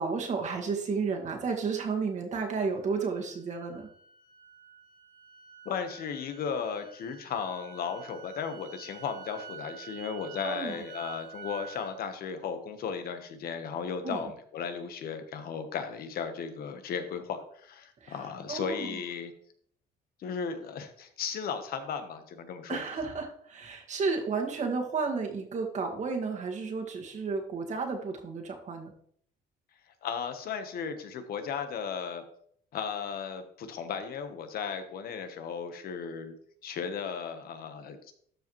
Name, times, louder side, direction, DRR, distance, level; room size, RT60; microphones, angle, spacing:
voice 1, 0.0-3.9 10.4-10.8 14.0-14.2 18.0-18.2 18.5-19.0 22.7-28.9, right 4 dB, 45° right, 2 dB, 1.9 m, -32 dB
sound 1, 2.8-11.9, right 7 dB, 75° right, 1.5 m, -48 dB
voice 2, 5.6-19.3 20.2-22.8 30.0-32.2 32.7-36.3 36.6-38.2, left 6 dB, 60° left, 8 dB, 1.2 m, -35 dB
12.5 x 5.0 x 3.2 m, 0.62 s
cardioid pair, 110°, 17 cm